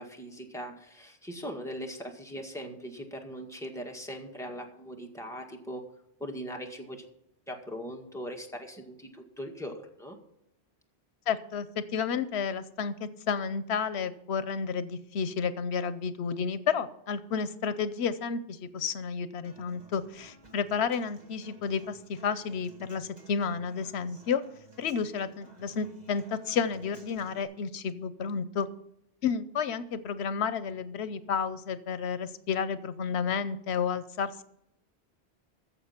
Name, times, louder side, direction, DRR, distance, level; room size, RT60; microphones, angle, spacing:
voice 1, 0.0-5.8 6.2-7.0 7.5-10.2, equal, 5° left, 1 dB, 1.8 m, -40 dB
voice 2, 11.3-11.7 11.9-24.4 24.8-28.7 29.2-34.3, left 6 dB, 80° left, 14 dB, 1.0 m, -31 dB
Human voice / Acoustic guitar, 19.4-27.4, right 2 dB, 40° right, 2.2 m, -55 dB
14.5 x 7.0 x 5.8 m, 0.79 s
omnidirectional pair, 1.1 m